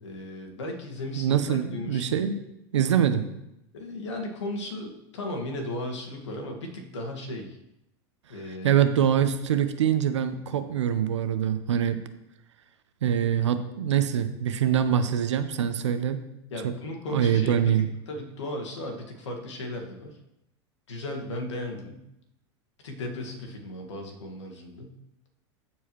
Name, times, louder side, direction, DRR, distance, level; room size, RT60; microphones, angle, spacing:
voice 1, 0.0-2.3 3.7-7.6 8.3-8.8 10.5-10.6 16.5-20.2 20.9-22.0 22.8-25.0, left 1 dB, 85° left, 1 dB, 1.8 m, -36 dB
voice 2, 1.2-2.4 2.7-3.3 8.6-12.0 13.0-16.2 16.6-16.7 17.1-17.9, right 9 dB, 85° right, 9 dB, 0.8 m, -24 dB
14.0 x 4.7 x 3.1 m, 0.85 s
hypercardioid pair, 105°, 15 cm